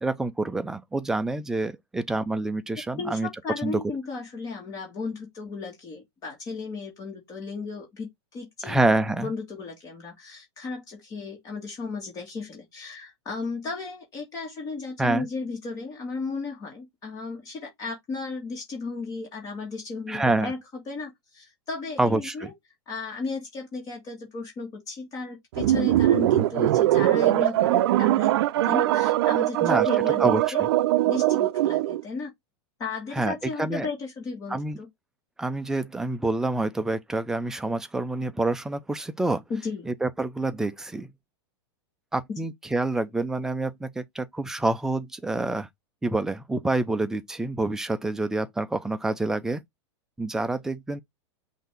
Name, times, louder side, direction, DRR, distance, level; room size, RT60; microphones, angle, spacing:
voice 1, 0.0-3.3 3.6-3.8 8.6-9.3 15.0-15.3 20.1-20.5 22.0-22.5 29.6-29.9 30.2-30.7 33.1-33.9 34.5-34.8 35.4-39.4 39.9-41.1 42.1-45.7 46.0-49.6 50.2-51.0, right 2 dB, 5° right, 0.4 m, -27 dB
voice 2, 2.9-22.5 22.9-28.4 28.6-30.7 31.0-32.3 32.8-34.9 39.5-39.9, left 4 dB, 25° left, 1.8 m, -35 dB
sound 1, 25.6-32.0, right 14 dB, 65° right, 0.5 m, -21 dB
5.7 x 2.7 x 3.4 m
supercardioid pair, 150°, 14 cm